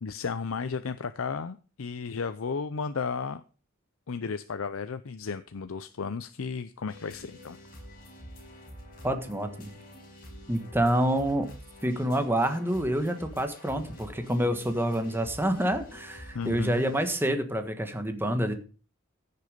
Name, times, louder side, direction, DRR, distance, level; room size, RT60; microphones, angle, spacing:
voice 1, 0.0-3.4 4.1-7.6 16.3-16.9, left 5 dB, 80° left, 12 dB, 0.6 m, -34 dB
sound 1, 6.9-17.1, equal, 45° left, 5.6 m, -47 dB
voice 2, 9.0-9.7 10.5-11.5 11.8-18.5, right 1 dB, 10° right, 7 dB, 1.5 m, -27 dB
15.0 x 6.8 x 5.1 m, 0.36 s
head